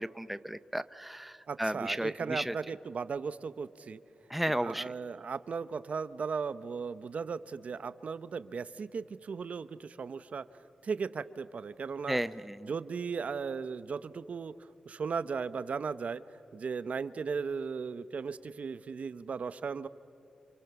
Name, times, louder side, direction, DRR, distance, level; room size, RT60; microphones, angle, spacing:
voice 1, 0.0-2.5 4.3-4.9 12.1-12.7, right 1 dB, 5° right, 14 dB, 0.6 m, -34 dB
voice 2, 1.5-4.0 4.5-10.4 10.8-12.2 12.6-14.5 14.9-16.2 16.5-19.9, right 5 dB, 65° right, 14 dB, 0.8 m, -36 dB
28.5 x 27.5 x 7.0 m, 2.7 s
cardioid pair, 85°, 3 cm